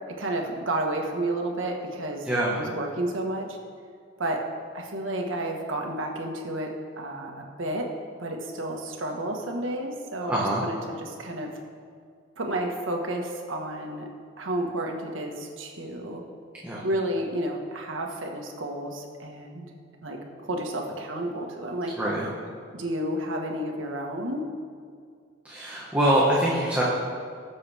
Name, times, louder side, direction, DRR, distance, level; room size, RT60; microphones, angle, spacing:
voice 1, 0.2-2.3 2.5-3.6 4.2-4.5 4.7-7.9 8.2-11.6 12.4-14.1 14.4-16.2 16.8-19.7 20.0-21.9 22.7-24.5, right 1 dB, 90° right, 1 dB, 1.5 m, -31 dB
voice 2, 10.3-10.6 16.6-16.8 22.0-22.3 25.4-26.8, right 1 dB, 10° right, -7 dB, 1.5 m, -24 dB
20.5 x 7.0 x 3.5 m, 2.2 s
head